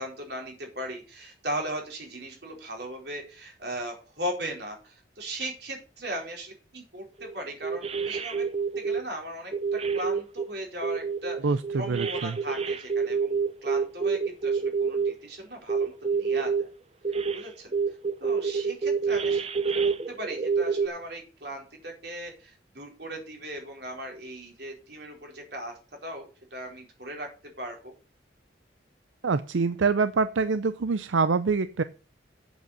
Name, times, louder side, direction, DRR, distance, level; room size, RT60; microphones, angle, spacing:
voice 1, 0.0-8.5 8.8-16.7 17.3-17.7 18.2-27.3 27.6-27.9, right 1 dB, 60° right, 1 dB, 4.4 m, -38 dB
sound 1, 7.2-7.3 7.6-9.0 9.5-10.4 10.8-15.1 15.7-16.6 17.0-17.4 17.7-20.9, right 5 dB, 35° right, 0.7 m, -27 dB
voice 2, 11.4-12.4 29.2-31.8, right 4 dB, 90° right, 13 dB, 0.5 m, -25 dB
8.2 x 7.8 x 6.7 m, 0.34 s
head